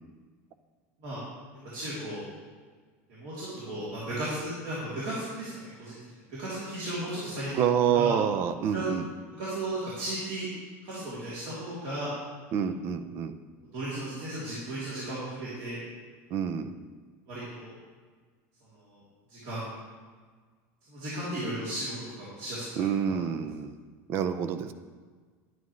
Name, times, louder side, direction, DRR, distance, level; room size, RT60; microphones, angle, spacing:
voice 1, 1.7-2.3 3.1-6.0 6.3-7.6 7.9-8.1 8.7-8.9 9.4-10.5 10.8-12.1 13.7-15.8 17.3-17.7 18.7-19.0 19.3-19.7 20.9-22.9, right 1 dB, 50° right, -10 dB, 3.0 m, -35 dB
voice 2, 7.5-9.1 12.5-13.3 16.3-16.8 22.8-23.7 24.1-24.7, right 8 dB, 35° right, 11 dB, 0.5 m, -27 dB
11.0 x 9.3 x 3.2 m, 1.5 s
supercardioid pair, 170°, 7 cm